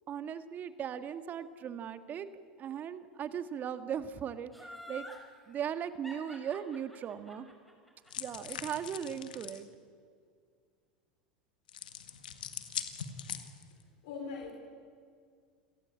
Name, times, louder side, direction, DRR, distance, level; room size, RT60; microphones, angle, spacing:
voice 1, 0.1-2.3 2.6-5.0 5.5-7.5 8.2-9.7, right 8 dB, 40° right, 10 dB, 1.8 m, -38 dB
Laughter, 4.5-5.2 6.0-9.1 9.5-9.6, left 1 dB, ahead, 5.6 m, -48 dB
sound 1, 8.1-9.6 11.7-13.8, left 8 dB, 85° left, 1.8 m, -42 dB
voice 2, 13.7-14.5, left 5 dB, 70° left, 2 dB, 3.8 m, -42 dB
28.5 x 18.0 x 8.6 m, 2.1 s
hypercardioid pair, 90°, 5 cm